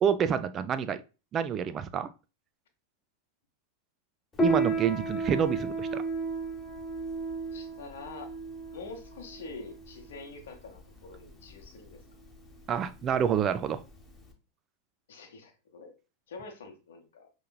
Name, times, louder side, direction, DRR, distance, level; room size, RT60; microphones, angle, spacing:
voice 1, 0.0-1.0 1.3-2.1 4.4-6.0 12.7-13.8, right 8 dB, 30° right, 0.3 m, -28 dB
Piano, 4.3-14.3, right 3 dB, 15° left, 0.9 m, -33 dB
voice 2, 7.5-8.3 8.7-12.0 15.1-15.9 16.3-17.3, left 4 dB, 60° left, 1.0 m, -45 dB
5.4 x 3.1 x 2.2 m
figure-of-eight pair, 90°, 0 cm